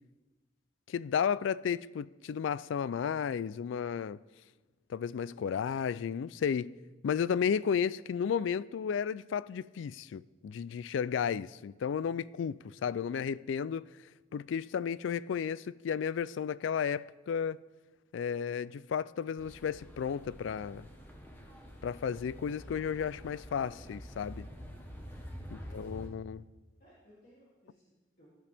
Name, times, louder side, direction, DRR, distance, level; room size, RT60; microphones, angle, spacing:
voice 1, 0.9-4.2 4.9-6.7 7.0-13.9 14.3-17.6 18.1-20.9 21.8-24.5 25.5-26.4, left 7 dB, 75° left, 0.3 m, -33 dB
sound 1, 19.4-26.1, equal, 10° left, 1.2 m, -47 dB
voice 2, 25.5-26.2 26.8-28.4, equal, 50° left, 2.8 m, -62 dB
17.0 x 11.0 x 3.5 m
head